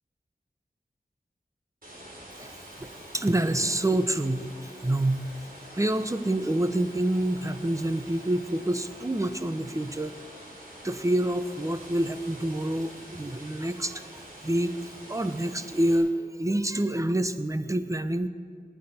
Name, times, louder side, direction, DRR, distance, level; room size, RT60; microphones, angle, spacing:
sound 1, 1.8-16.0, right 1 dB, 60° right, 4.0 m, -46 dB
voice 1, 2.4-4.4 4.8-5.2 5.7-10.1 10.8-14.7 15.1-18.3, right 1 dB, 20° right, 10 dB, 0.8 m, -27 dB
18.5 x 10.5 x 4.3 m, 2.2 s
wide cardioid pair, 40°, 17 cm